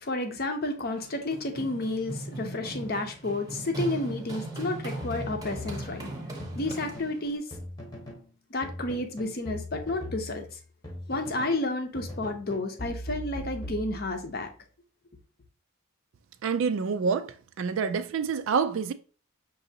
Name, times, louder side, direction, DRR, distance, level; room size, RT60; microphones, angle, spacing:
voice 1, 0.0-6.0 6.6-7.4 8.5-10.6 11.1-14.5, left 2 dB, 45° left, 0.7 m, -31 dB
Run, 1.0-7.4, right 1 dB, 15° right, 0.8 m, -38 dB
sound 1, 5.0-7.2 7.5-8.3 8.6-11.6 12.0-14.4, left 1 dB, 20° left, 0.9 m, -40 dB
voice 2, 16.4-18.9, right 5 dB, 65° right, 0.3 m, -27 dB
5.9 x 2.7 x 2.7 m
head